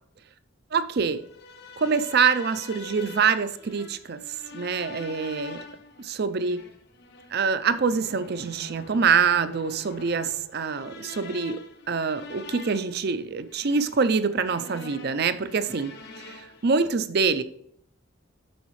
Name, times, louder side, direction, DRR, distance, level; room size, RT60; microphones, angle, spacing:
voice 1, 0.7-1.2 1.8-4.2 4.5-5.6 6.0-6.6 7.3-11.6 11.9-17.4, right 5 dB, 50° right, 12 dB, 0.5 m, -25 dB
sound 1, 1.2-16.7, left 2 dB, 50° left, 0.9 m, -44 dB
7.1 x 6.4 x 3.1 m, 0.70 s
head